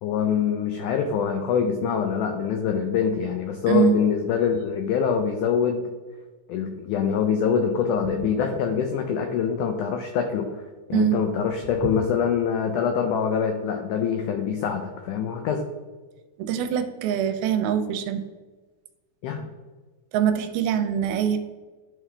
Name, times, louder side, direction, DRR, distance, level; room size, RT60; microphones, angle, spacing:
voice 1, 0.0-5.8 6.5-10.5 10.9-15.6 19.2-19.5, left 7 dB, 90° left, 5 dB, 1.7 m, -24 dB
voice 2, 16.4-18.2 20.1-21.4, right 9 dB, 85° right, 8 dB, 2.5 m, -23 dB
11.0 x 3.7 x 3.3 m, 1.3 s
omnidirectional pair, 4.3 m